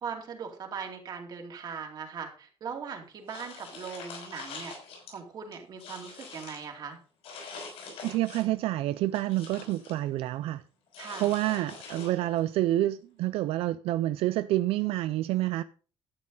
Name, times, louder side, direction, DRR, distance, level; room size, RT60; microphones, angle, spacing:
voice 1, 0.0-4.7 5.1-7.0 11.0-11.3, right 6 dB, 45° right, 2.5 m, -39 dB
sound 1, 3.3-5.1 5.5-6.7 7.2-8.6 8.9-10.0 10.9-12.4, left 4 dB, 85° left, 5.7 m, -44 dB
voice 2, 8.0-10.6 11.2-15.6, right 15 dB, 85° right, 0.4 m, -28 dB
12.0 x 8.7 x 3.9 m
cardioid pair, 155°, 10 cm